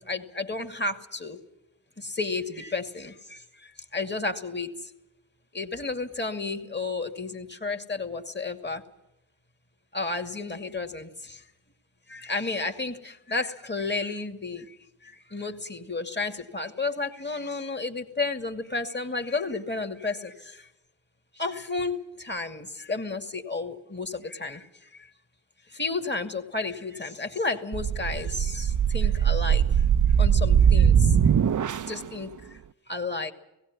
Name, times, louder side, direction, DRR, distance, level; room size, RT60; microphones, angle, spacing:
voice 1, 0.0-1.4 2.0-3.4 3.9-4.7 5.5-8.8 9.9-11.4 12.1-14.7 15.0-20.6 21.4-24.7 25.7-29.6 30.2-31.1 31.9-32.3 32.9-33.3, left 3 dB, 20° left, 6 dB, 2.4 m, -32 dB
sound 1, 27.7-32.1, right 8 dB, 40° right, 0.7 m, -21 dB
17.0 x 16.5 x 9.7 m, 0.91 s
supercardioid pair, 45°, 47 cm